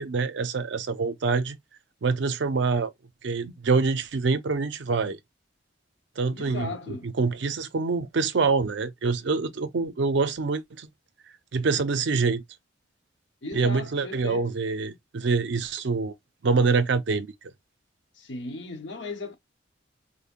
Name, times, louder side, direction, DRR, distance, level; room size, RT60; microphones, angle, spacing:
voice 1, 0.0-1.6 2.0-2.9 3.2-5.2 6.2-10.9 11.5-12.4 13.5-16.1 16.4-17.3, right 4 dB, 65° right, 0.5 m, -25 dB
voice 2, 6.3-7.1 13.4-14.5 18.2-19.3, left 3 dB, 70° left, 0.9 m, -36 dB
5.2 x 2.0 x 2.4 m
head